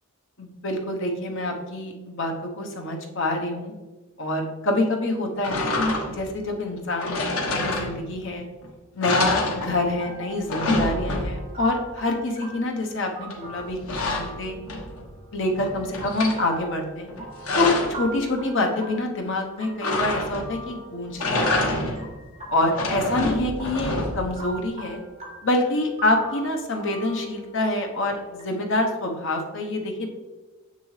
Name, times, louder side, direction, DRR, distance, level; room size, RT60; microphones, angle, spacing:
voice 1, 0.4-3.7 4.2-8.4 8.9-14.6 15.3-17.1 17.5-21.9 22.5-25.0 25.4-30.1, left 2 dB, 60° left, 2 dB, 1.1 m, -26 dB
sound 1, 5.4-6.3 7.0-8.3 8.6-8.7 9.0-10.1 10.3-11.6 13.3-15.1 15.5-16.4 17.1-18.0 19.8-20.6 21.1-22.1 22.6-24.4, left 2 dB, 80° left, 1.3 m, -27 dB
sound 2, 9.2-28.4, right 2 dB, 30° right, 1.4 m, -42 dB
7.0 x 6.7 x 3.3 m, 1.2 s
head